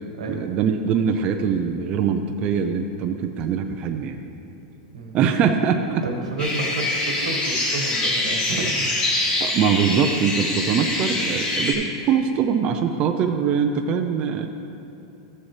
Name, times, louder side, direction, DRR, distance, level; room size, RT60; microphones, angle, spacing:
voice 1, 0.3-4.2 5.1-6.0 8.5-8.7 9.4-14.5, right 7 dB, 35° right, 4 dB, 0.5 m, -22 dB
voice 2, 6.0-8.9, right 2 dB, 85° right, 3 dB, 1.4 m, -30 dB
sound 1, 6.4-11.7, left 2 dB, 30° left, 2.0 m, -24 dB
13.0 x 7.1 x 3.3 m, 2.8 s
supercardioid pair, 135°, 3 cm